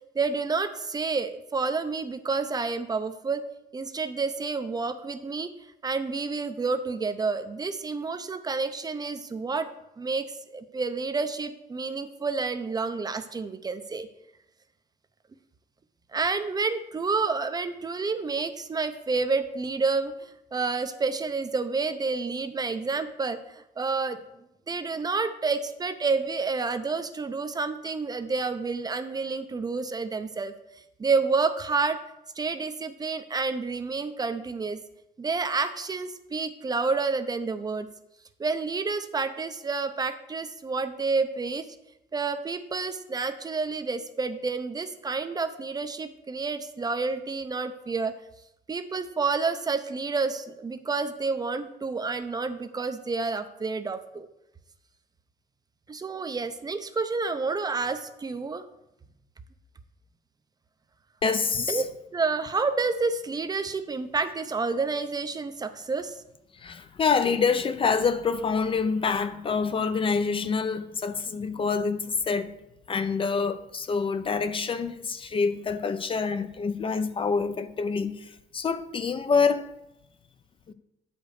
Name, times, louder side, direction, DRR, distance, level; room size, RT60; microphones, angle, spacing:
voice 1, 0.1-5.5 5.8-10.3 10.5-14.1 16.1-24.2 24.7-30.5 31.0-32.0 32.4-34.8 35.2-37.9 38.4-41.7 42.1-48.1 48.7-54.3 55.9-58.6 61.7-61.8 62.1-66.2, right 4 dB, 25° right, 0.6 m, -29 dB
voice 2, 61.2-61.8 66.5-72.5 72.9-79.7 80.7-80.8, left 5 dB, 30° left, 0.6 m, -26 dB
8.0 x 5.1 x 6.4 m
cardioid pair, 110°, 17 cm